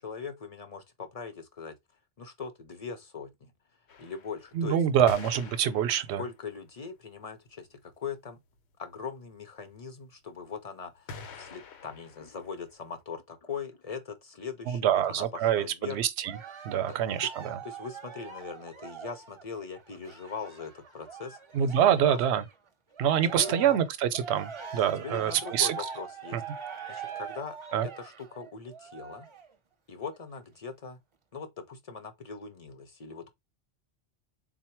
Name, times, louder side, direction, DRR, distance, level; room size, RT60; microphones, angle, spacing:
voice 1, 0.0-1.8 2.2-3.5 4.0-4.8 6.1-8.4 8.8-16.1 16.9-17.0 17.2-17.3 17.6-21.7 22.0-22.2 23.4-23.8 24.9-26.4 26.9-27.6 27.8-29.3 29.9-31.0 31.3-33.3, left 5 dB, 40° left, 0.7 m, -41 dB
sound 1, 3.9-6.7 7.3-7.4 7.6-7.7 7.9-8.0 8.3-8.7 11.1-13.0, left 4 dB, 85° left, 1.0 m, -45 dB
voice 2, 4.5-6.2 14.7-16.4 16.6-17.6 21.5-22.4 23.0-25.8 26.3-26.4 27.7-27.9, right 9 dB, 90° right, 0.8 m, -26 dB
Cheering, 16.2-22.5 22.9-29.5 30.1-30.2, right 6 dB, 35° right, 0.5 m, -43 dB
3.9 x 2.1 x 4.3 m
omnidirectional pair, 1.1 m